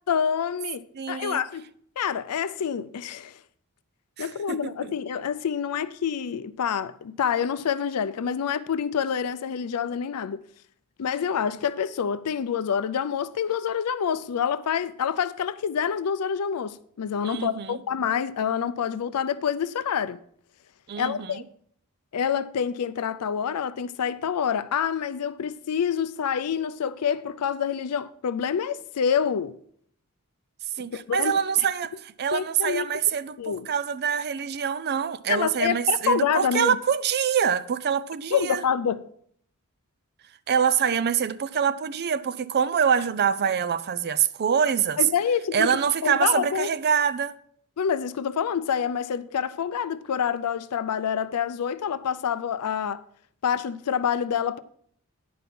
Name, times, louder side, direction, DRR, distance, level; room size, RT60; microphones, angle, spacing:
voice 1, 0.1-1.7 2.0-3.3 4.2-10.4 11.0-20.2 21.0-21.4 22.1-29.6 30.8-31.3 32.3-32.9 33.4-33.7 35.3-36.8 38.3-39.0 45.0-45.7 46.0-46.7 47.8-53.0 53.4-54.6, left 7 dB, 90° left, 0.4 m, -27 dB
voice 2, 0.9-1.4 4.2-4.9 17.2-17.8 20.9-21.4 30.8-38.6 40.5-45.0 45.5-47.4, right 7 dB, 45° right, 0.5 m, -25 dB
10.5 x 5.4 x 5.9 m
head